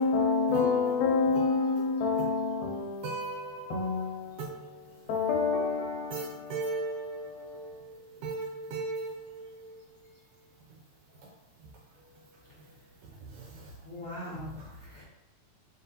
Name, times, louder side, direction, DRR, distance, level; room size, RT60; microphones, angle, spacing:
voice 1, 0.0-7.7, left 4 dB, 80° left, 1.9 m, -29 dB
voice 2, 0.5-0.9 1.4-1.8 2.2-2.3 3.0-4.0 4.4-4.7 6.1-9.8 13.0-13.7 14.2-14.4, right 3 dB, 85° right, 2.1 m, -38 dB
voice 3, 13.8-15.0, left 1 dB, 60° left, 1.3 m, -42 dB
5.4 x 2.4 x 2.7 m
omnidirectional pair, 3.6 m